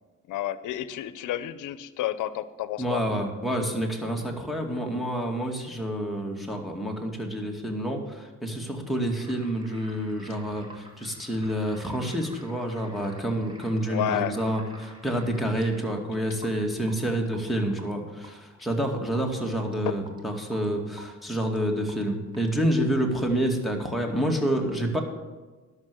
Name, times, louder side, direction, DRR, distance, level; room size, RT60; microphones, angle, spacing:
voice 1, 0.3-3.0 13.9-14.3 19.9-20.0, left 13 dB, 85° left, 15 dB, 0.8 m, -30 dB
voice 2, 2.8-25.0, right 1 dB, ahead, 2 dB, 2.3 m, -28 dB
sound 1, 9.2-22.8, right 1 dB, 15° right, 2.4 m, -50 dB
11.5 x 6.7 x 7.8 m, 1.3 s
cardioid pair, 90°, 30 cm